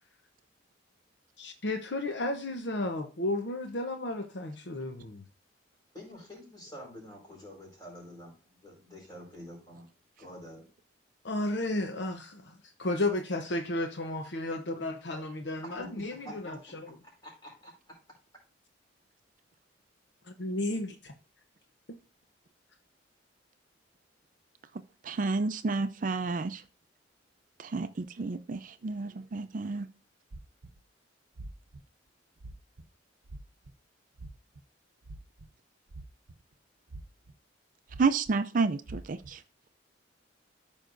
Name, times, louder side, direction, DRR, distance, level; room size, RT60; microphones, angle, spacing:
voice 1, 1.4-5.2 11.2-12.5 12.8-16.9 20.3-21.1, left 2 dB, 60° left, 0.8 m, -33 dB
voice 2, 5.9-9.9 10.2-10.7 15.8-16.7 17.0-18.0, equal, 20° left, 4.7 m, -47 dB
voice 3, 25.0-26.6 27.6-29.9 38.0-39.4, right 4 dB, 45° right, 0.4 m, -30 dB
Heart Beat, 30.3-30.8 31.4-31.8 32.4-32.9 33.3-33.7 34.2-34.6 35.0-35.5 35.9-36.5 36.9-37.3 37.9-38.3 38.9-39.3, right 2 dB, 85° right, 0.7 m, -44 dB
14.0 x 5.4 x 2.6 m
head